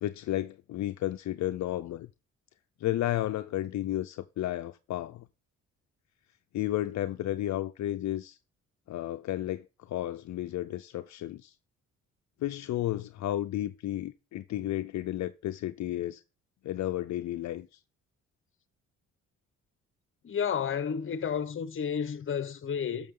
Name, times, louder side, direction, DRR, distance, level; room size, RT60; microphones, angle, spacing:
voice 1, 0.0-2.1 2.8-5.3 6.5-8.4 8.9-11.5 12.4-16.2 16.6-17.7, left 13 dB, 65° left, 0.6 m, -32 dB
voice 2, 20.2-23.1, left 7 dB, 40° left, 1.0 m, -31 dB
12.5 x 7.0 x 3.8 m
cardioid pair, 90°, 30 cm